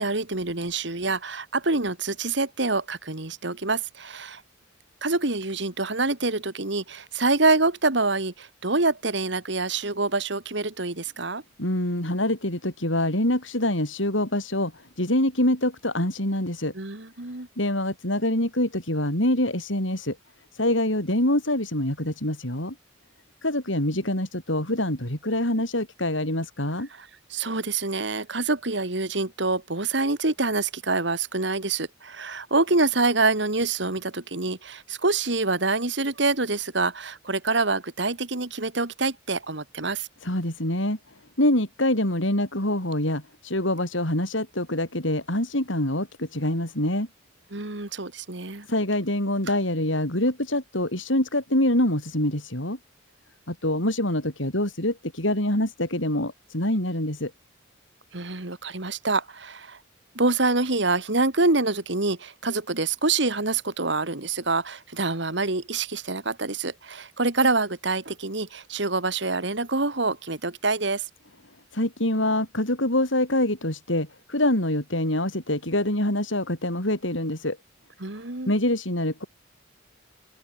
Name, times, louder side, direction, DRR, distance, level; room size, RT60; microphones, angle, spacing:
voice 1, 0.0-4.4 5.0-11.4 16.8-17.5 27.0-40.1 47.5-48.7 58.1-59.8 60.2-71.1 78.0-78.5, right 3 dB, 60° right, 2.2 m, -26 dB
voice 2, 11.6-16.7 17.6-20.2 20.5-22.7 23.4-26.9 40.2-41.0 41.4-47.1 48.7-52.8 53.5-57.3 71.7-77.6 78.5-79.2, left 1 dB, 75° left, 7.8 m, -25 dB
open air
head